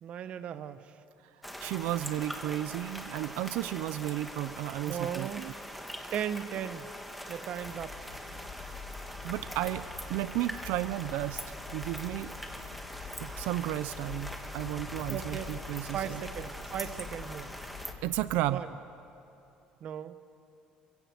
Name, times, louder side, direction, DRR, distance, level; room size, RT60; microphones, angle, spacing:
voice 1, 0.0-0.9 4.9-5.4 6.1-6.9 7.3-8.1 15.1-15.5 15.8-17.5 18.5-18.7 19.8-20.2, right 9 dB, 45° right, 12 dB, 1.0 m, -37 dB
sound 1, 1.4-17.9, equal, ahead, 1.5 m, -43 dB
voice 2, 1.6-5.5 9.1-12.7 13.2-16.2 18.0-18.6, right 15 dB, 90° right, 14 dB, 0.5 m, -33 dB
sound 2, 7.6-18.5, left 5 dB, 60° left, 3.6 m, -46 dB
27.0 x 16.5 x 7.9 m, 2.8 s
cardioid pair, 145°, 3 cm